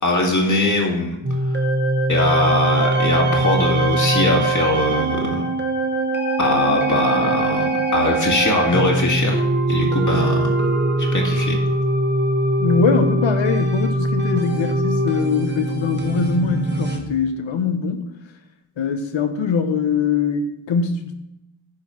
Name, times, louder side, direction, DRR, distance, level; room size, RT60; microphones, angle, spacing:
voice 1, 0.0-1.2 1.4-1.6 2.1-5.4 6.4-9.4 9.7-10.7 11.1-11.6, left 2 dB, 40° left, -1 dB, 1.8 m, -21 dB
sound 1, 1.2-17.0, right 1 dB, 20° right, 1.3 m, -21 dB
voice 2, 12.6-18.0 18.8-21.1, left 5 dB, 75° left, 7 dB, 1.2 m, -22 dB
10.0 x 4.7 x 5.6 m, 0.85 s
wide cardioid pair, 140°, 46 cm